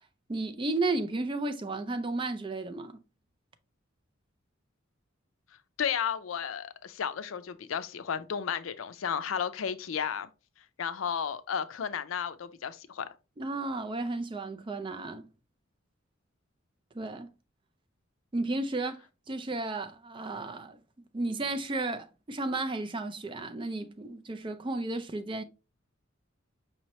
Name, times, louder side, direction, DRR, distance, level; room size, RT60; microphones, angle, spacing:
voice 1, 0.3-3.0 13.4-15.3 16.9-17.3 18.3-19.0 19.3-20.8 21.1-25.4, right 2 dB, 25° right, 0.4 m, -33 dB
voice 2, 5.8-10.3 10.8-13.1, left 7 dB, 80° left, 0.5 m, -33 dB
5.4 x 3.0 x 3.0 m
head